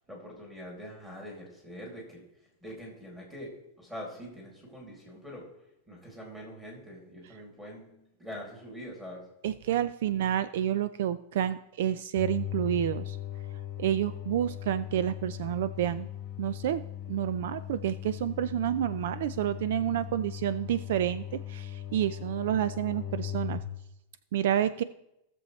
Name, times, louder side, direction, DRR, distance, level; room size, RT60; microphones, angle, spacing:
voice 1, 0.1-2.2 2.6-3.5 3.8-5.5 5.9-9.2, equal, 5° right, -2 dB, 2.5 m, -44 dB
voice 2, 9.4-13.2 13.8-16.1 16.4-16.8 17.1-23.6 24.3-24.8, right 11 dB, 60° right, 14 dB, 0.3 m, -29 dB
sound 1, 12.2-23.6, left 10 dB, 15° left, 1.4 m, -39 dB
17.5 x 6.9 x 3.1 m, 0.84 s
supercardioid pair, 175°, 0 cm